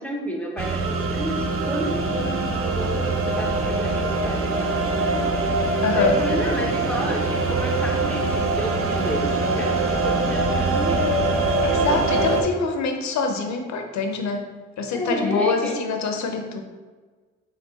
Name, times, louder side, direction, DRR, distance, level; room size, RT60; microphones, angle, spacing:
voice 1, 0.0-5.3 5.9-11.1 14.9-15.8, equal, 5° left, 0 dB, 0.8 m, -30 dB
sound 1, 0.6-12.4, right 3 dB, 50° right, 0.6 m, -23 dB
voice 2, 5.8-6.1 11.6-14.5 14.8-16.6, left 4 dB, 65° left, 4 dB, 0.7 m, -25 dB
4.5 x 2.4 x 4.0 m, 1.4 s
cardioid pair, 90°, 30 cm